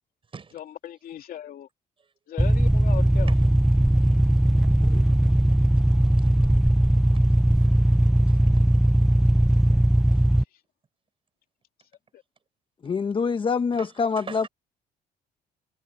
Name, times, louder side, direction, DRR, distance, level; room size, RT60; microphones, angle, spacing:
voice 1, 0.5-1.7 2.3-3.3 12.1-12.2, left 11 dB, 60° left, 2.8 m, -38 dB
sound 1, 2.4-10.4, right 1 dB, 5° right, 0.8 m, -19 dB
voice 2, 4.0-4.4 6.2-6.3 7.2-7.7 8.3-8.6 10.1-10.2 13.8-14.5, right 5 dB, 30° right, 6.8 m, -45 dB
voice 3, 12.8-14.5, left 5 dB, 30° left, 1.2 m, -25 dB
cardioid pair, 110°, 17 cm